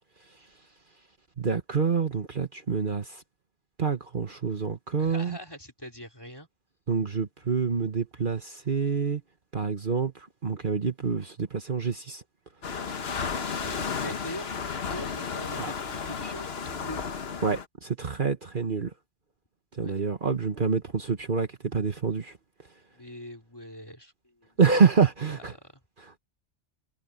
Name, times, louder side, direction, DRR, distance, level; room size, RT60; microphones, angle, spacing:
voice 1, 1.4-3.2 3.8-5.4 6.9-9.2 9.5-12.2 15.6-15.7 17.4-18.9 19.7-22.3 24.6-25.5, right 5 dB, 50° right, 1.5 m, -27 dB
voice 2, 5.0-6.5 13.6-17.2 19.8-19.9 22.9-24.7 25.2-25.8, left 1 dB, 20° left, 3.5 m, -43 dB
sound 1, 12.6-17.7, left 5 dB, 65° left, 1.4 m, -33 dB
omnidirectional pair, 1.1 m